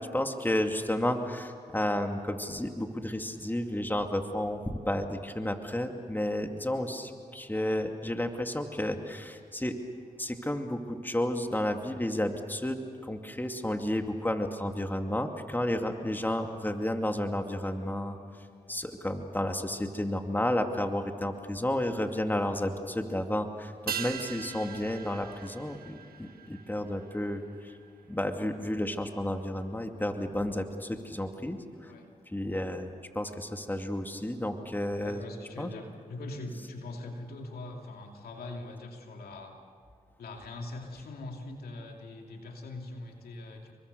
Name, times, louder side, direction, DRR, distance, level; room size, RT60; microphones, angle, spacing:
voice 1, 0.0-9.8 10.2-18.2 18.7-27.7 28.1-31.9 32.3-32.9 33.1-35.2 35.6-35.7, left 1 dB, 15° left, 5 dB, 2.5 m, -32 dB
sound 1, 23.9-28.6 28.8-28.9, right 8 dB, 85° right, 1.3 m, -41 dB
voice 2, 35.0-39.6 40.2-43.7, left 2 dB, 90° left, 2 dB, 2.6 m, -42 dB
29.0 x 23.5 x 6.8 m, 2.1 s
cardioid pair, 45°, 15 cm